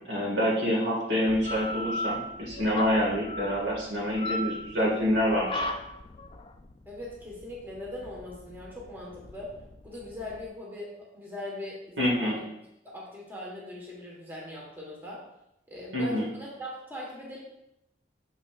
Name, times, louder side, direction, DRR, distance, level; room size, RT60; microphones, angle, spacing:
voice 1, 0.1-5.7 12.0-12.4 15.9-16.3, equal, 85° right, -3 dB, 1.9 m, -27 dB
sound 1, 1.3-10.5, left 1 dB, 30° left, 0.3 m, -37 dB
voice 2, 6.8-9.5 9.8-12.4 12.8-15.2 15.7-17.4, left 1 dB, 10° right, -4 dB, 1.3 m, -40 dB
6.7 x 6.0 x 2.4 m, 0.83 s
head